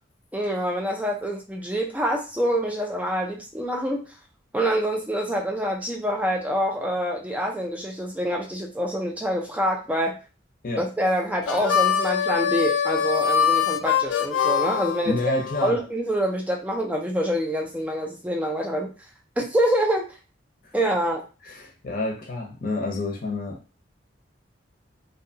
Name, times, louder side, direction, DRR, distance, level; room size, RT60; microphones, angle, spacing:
voice 1, 0.3-4.0 4.5-10.2 10.7-15.3 15.6-18.9 19.4-20.1 20.7-21.2, equal, 10° right, 0 dB, 0.4 m, -26 dB
Harmonica, 11.4-15.7, left 7 dB, 80° left, 0.3 m, -23 dB
voice 2, 15.0-15.8 21.5-23.6, left 2 dB, 50° left, 1 dB, 0.7 m, -28 dB
2.7 x 2.2 x 2.7 m, 0.33 s
head